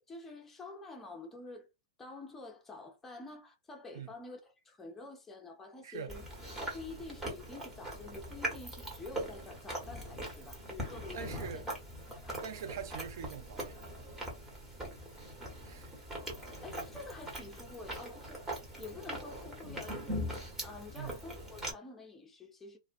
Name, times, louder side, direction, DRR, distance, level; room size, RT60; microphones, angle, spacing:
voice 1, 0.1-1.7 2.0-6.3 6.7-11.6 12.1-12.4 16.4-18.4 18.8-20.2 20.6-22.8, left 3 dB, 15° left, 0.7 m, -48 dB
Chewing mastication, 6.1-21.7, right 1 dB, 15° right, 1.2 m, -41 dB
voice 2, 11.1-11.7 12.4-13.8 15.6-16.0 21.0-21.1, right 7 dB, 65° right, 0.5 m, -43 dB
2.3 x 2.2 x 2.5 m
hypercardioid pair, 120°, 2 cm